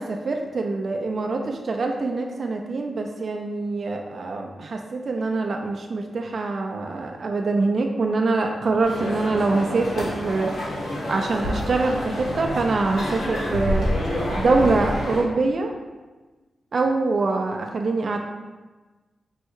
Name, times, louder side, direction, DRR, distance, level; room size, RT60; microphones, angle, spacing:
voice 1, 0.0-10.5 11.1-13.9 14.3-15.7 16.7-18.2, right 3 dB, 50° right, 2 dB, 0.3 m, -24 dB
sound 1, 8.8-15.2, equal, 75° left, 1.2 m, -28 dB
4.6 x 2.1 x 4.6 m, 1.2 s
wide cardioid pair, 120°, 0 cm